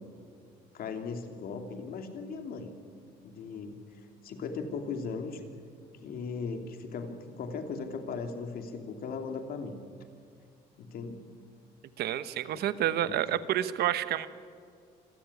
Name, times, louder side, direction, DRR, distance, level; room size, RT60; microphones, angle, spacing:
voice 1, 0.7-2.7 3.2-3.8 4.2-5.4 6.0-9.7 10.8-11.2 12.5-12.6 13.0-13.2, left 5 dB, 60° left, 6 dB, 2.8 m, -38 dB
voice 2, 12.0-14.3, right 11 dB, 70° right, 13 dB, 1.1 m, -29 dB
26.5 x 14.5 x 9.8 m, 2.3 s
cardioid pair, 110°, 17 cm